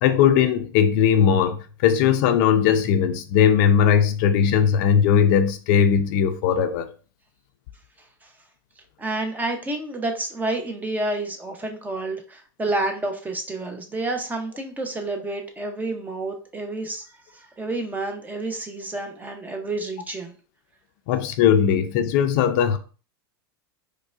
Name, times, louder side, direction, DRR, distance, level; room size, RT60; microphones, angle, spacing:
voice 1, 0.0-6.9 21.1-22.8, left 8 dB, 60° left, 0.5 m, -19 dB
voice 2, 9.0-17.1 17.3-20.3, right 2 dB, 15° right, 0.7 m, -29 dB
4.8 x 2.2 x 2.4 m
hypercardioid pair, 110°, 12 cm